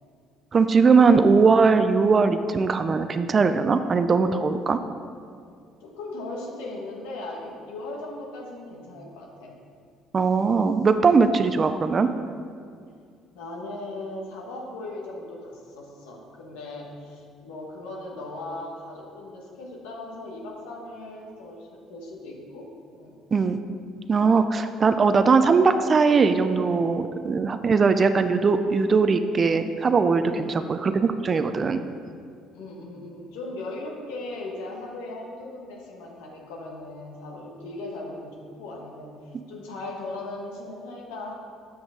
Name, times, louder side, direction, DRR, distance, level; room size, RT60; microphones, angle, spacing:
voice 1, 0.5-4.8 10.1-12.1 23.3-23.6 24.1-31.8, right 4 dB, 40° right, 9 dB, 0.5 m, -20 dB
voice 2, 5.8-9.6 13.3-23.1 30.3-30.7 32.5-41.3, left 2 dB, 85° left, -2 dB, 1.4 m, -38 dB
7.2 x 6.1 x 5.1 m, 2.2 s
supercardioid pair, 70°, 0 cm